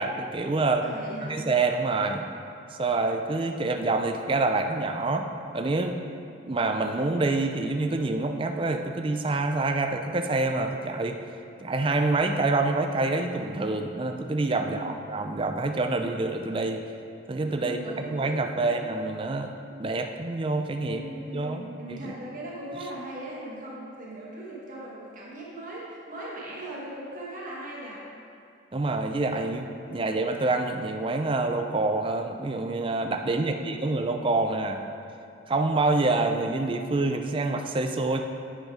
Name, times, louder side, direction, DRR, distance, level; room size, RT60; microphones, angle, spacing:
voice 1, 0.0-0.9 1.2-2.2 2.8-5.3 5.5-6.0 6.5-11.2 11.6-16.8 17.3-17.8 18.1-19.5 19.8-21.0 21.3-22.1 28.7-34.9 35.5-38.2, right 2 dB, 25° right, 5 dB, 0.4 m, -27 dB
voice 2, 0.8-1.5 14.6-15.0 17.6-18.7 20.8-28.0 29.8-30.2 33.2-33.9, right 1 dB, 45° right, -5 dB, 1.4 m, -39 dB
9.0 x 6.5 x 4.9 m, 2.6 s
head